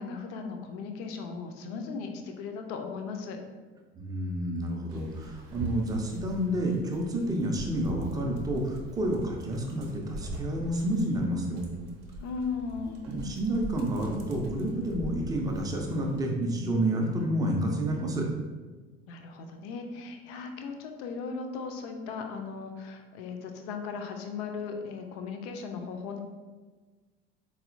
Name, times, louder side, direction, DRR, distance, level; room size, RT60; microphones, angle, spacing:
voice 1, 0.0-3.4 12.2-13.0 19.1-26.2, left 5 dB, 45° left, 4 dB, 0.4 m, -37 dB
voice 2, 3.9-11.6 13.1-18.3, right 1 dB, 10° right, 0 dB, 0.4 m, -29 dB
Dog, 4.9-16.2, right 1 dB, 55° right, 0.6 m, -42 dB
4.1 x 2.0 x 2.5 m, 1.3 s
figure-of-eight pair, 60°, 34 cm